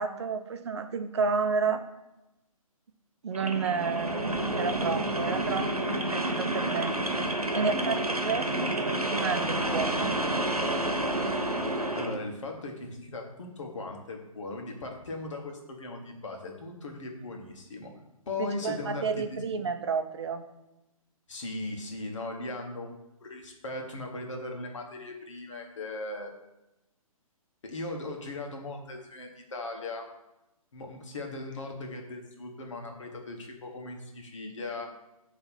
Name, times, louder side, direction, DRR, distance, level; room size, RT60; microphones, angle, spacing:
voice 1, 0.0-1.8 3.2-7.0 7.5-10.1 18.4-20.5, right 5 dB, 50° right, 8 dB, 0.7 m, -31 dB
sound 1, 3.3-12.2, right 1 dB, 85° right, 1.0 m, -29 dB
voice 2, 11.9-17.9 18.3-19.4 21.3-22.9 23.2-26.3 27.6-30.0 30.7-34.9, left 2 dB, 55° left, 2 dB, 1.5 m, -38 dB
7.8 x 3.3 x 5.7 m, 0.94 s
figure-of-eight pair, 130°, 19 cm